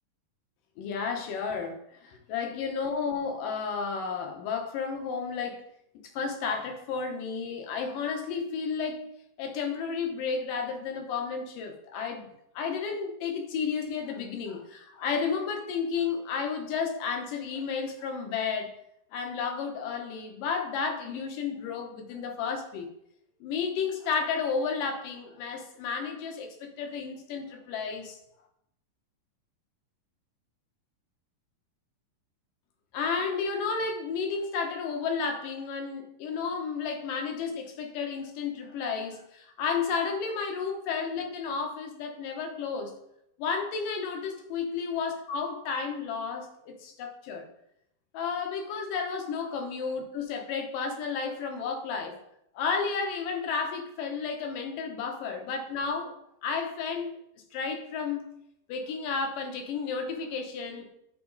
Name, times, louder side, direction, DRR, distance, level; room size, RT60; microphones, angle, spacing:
voice 1, 0.8-5.6 6.1-9.0 9.4-12.3 12.6-18.7 19.1-22.9 23.4-28.2 32.9-42.9 43.4-47.5 48.1-52.1 52.5-56.1 56.4-57.2 57.5-58.3 58.7-60.9, left 5 dB, 80° left, 4 dB, 2.8 m, -32 dB
12.0 x 4.7 x 4.0 m, 0.78 s
omnidirectional pair, 3.8 m